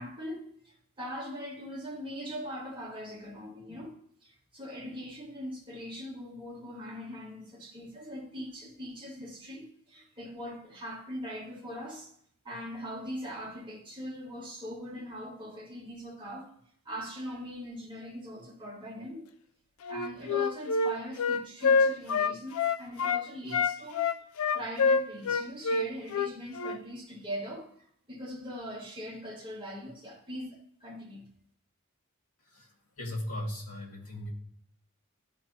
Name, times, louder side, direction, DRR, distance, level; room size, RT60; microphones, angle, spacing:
voice 1, 0.0-12.1 12.4-16.5 16.8-19.3 19.9-24.0 24.5-27.7 28.1-31.2, equal, 20° right, 1.5 m, -41 dB
Wind instrument woodwind instrument, 19.8-23.2 23.5-26.8, left 4 dB, 65° left, 0.4 m, -26 dB
voice 2, 33.0-34.3, left 1 dB, 80° left, 2.0 m, -37 dB
12.5 x 4.5 x 2.8 m
head